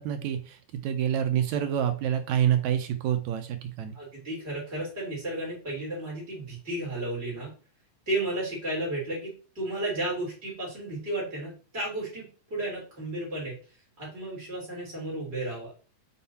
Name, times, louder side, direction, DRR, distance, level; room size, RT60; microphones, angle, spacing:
voice 1, 0.0-4.0, right 10 dB, 75° right, 8 dB, 1.9 m, -27 dB
voice 2, 3.9-7.5 8.1-13.6 14.0-15.7, right 1 dB, 20° right, -5 dB, 3.7 m, -33 dB
5.7 x 4.6 x 4.2 m, 0.37 s
omnidirectional pair, 3.5 m